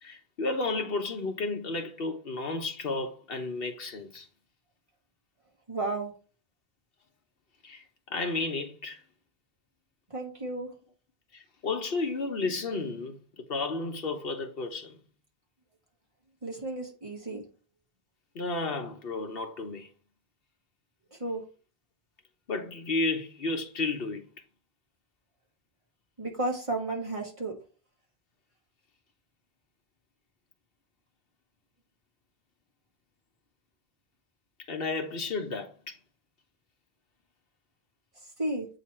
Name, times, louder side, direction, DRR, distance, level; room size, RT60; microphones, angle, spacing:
voice 1, 0.0-4.3 7.6-9.0 11.3-15.0 17.3-17.4 18.3-19.9 22.5-24.3 34.7-36.0, left 3 dB, 65° left, 1.1 m, -32 dB
voice 2, 5.7-6.1 10.1-10.7 16.4-17.4 21.2-21.4 26.2-27.6 38.4-38.7, right 2 dB, 30° right, 1.7 m, -32 dB
8.4 x 3.1 x 4.3 m
omnidirectional pair, 1.1 m